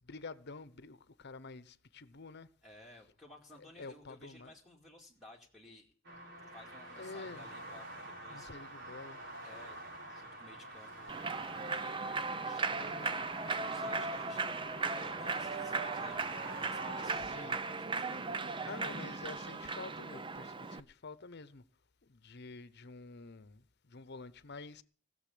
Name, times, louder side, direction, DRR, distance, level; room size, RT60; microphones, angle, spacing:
voice 1, 0.0-2.5 3.8-4.5 6.4-6.5 7.0-7.5 8.3-9.2 12.8-13.2 17.2-17.6 18.7-21.6 22.0-24.8, left 3 dB, 55° left, 1.0 m, -48 dB
voice 2, 2.6-5.9 6.5-8.5 9.4-9.8 10.0-12.1 12.4-19.0, left 1 dB, ahead, 2.4 m, -56 dB
sound 1, 6.0-17.2, right 1 dB, 60° right, 4.0 m, -47 dB
Human voice / Clapping / Cheering, 11.1-20.8, right 4 dB, 25° right, 0.6 m, -37 dB
18.5 x 7.0 x 8.5 m
head